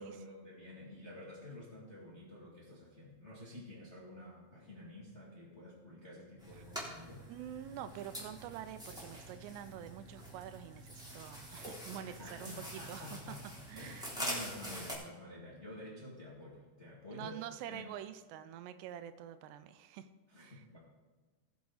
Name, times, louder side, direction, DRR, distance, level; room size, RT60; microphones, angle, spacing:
voice 1, 0.0-7.3 12.0-13.4 13.7-17.4 17.7-17.8 20.3-20.8, left 1 dB, 30° left, -5 dB, 1.2 m, -50 dB
sound 1, 6.4-14.9, equal, ahead, 2.4 m, -45 dB
voice 2, 7.3-12.5 12.9-13.4 13.7-14.1 17.1-20.1 20.4-20.6, right 10 dB, 90° right, 11 dB, 2.8 m, -46 dB
18.5 x 7.3 x 4.0 m, 1.3 s
omnidirectional pair, 4.9 m